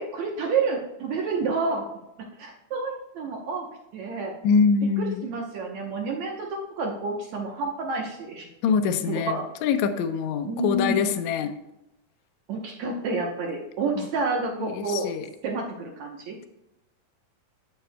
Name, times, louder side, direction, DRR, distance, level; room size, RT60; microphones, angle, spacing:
voice 1, 0.0-1.9 2.4-3.7 3.9-4.3 5.0-8.5 9.1-9.5 10.5-11.0 12.5-15.1 15.4-16.4, right 3 dB, 70° right, 0 dB, 1.9 m, -29 dB
voice 2, 4.4-5.3 8.6-11.5 13.9-14.1 14.6-15.3, left 6 dB, 85° left, 7 dB, 1.6 m, -24 dB
12.5 x 6.7 x 2.2 m, 0.89 s
omnidirectional pair, 4.2 m